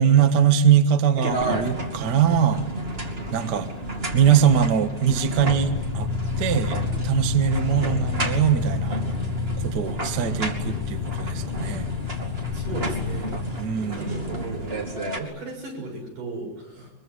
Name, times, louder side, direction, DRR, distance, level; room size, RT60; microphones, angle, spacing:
voice 1, 0.0-2.7 3.3-3.7 4.1-6.1 6.4-6.8 7.0-9.0 9.6-11.9 13.6-14.1, right 8 dB, 45° right, 8 dB, 1.4 m, -21 dB
sound 1, 1.2-15.2, right 1 dB, 20° right, 2.4 m, -32 dB
sound 2, 5.5-13.5, left 5 dB, 55° left, 1.8 m, -29 dB
voice 2, 12.5-13.4 13.8-14.8 15.2-16.9, right 2 dB, 75° right, 2 dB, 8.5 m, -35 dB
24.0 x 22.5 x 9.8 m, 1.0 s
omnidirectional pair, 3.7 m